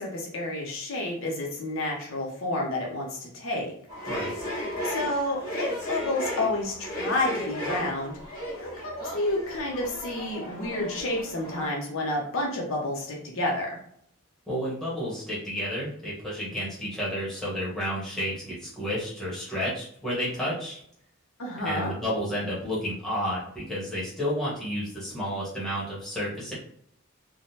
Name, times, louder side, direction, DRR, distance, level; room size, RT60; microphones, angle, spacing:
voice 1, 0.0-3.7 4.8-8.2 8.6-13.7 21.4-21.9, left 2 dB, 60° left, -1 dB, 0.7 m, -30 dB
sound 1, 3.9-11.7, equal, 40° left, 1.4 m, -34 dB
voice 2, 14.5-20.8 21.6-26.5, equal, ahead, -8 dB, 1.0 m, -31 dB
3.5 x 2.0 x 2.7 m, 0.66 s
head